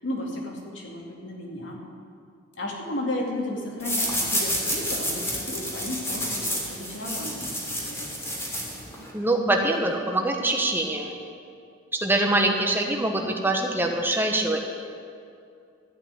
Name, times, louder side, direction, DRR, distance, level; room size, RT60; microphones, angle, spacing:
voice 1, 0.0-1.8 2.6-8.1, left 1 dB, 70° left, -1 dB, 2.5 m, -33 dB
sound 1, 3.8-9.1, equal, 15° left, 2.7 m, -29 dB
voice 2, 9.1-11.2 11.9-14.6, right 1 dB, 10° right, 2 dB, 1.2 m, -24 dB
13.5 x 6.0 x 9.7 m, 2.5 s
head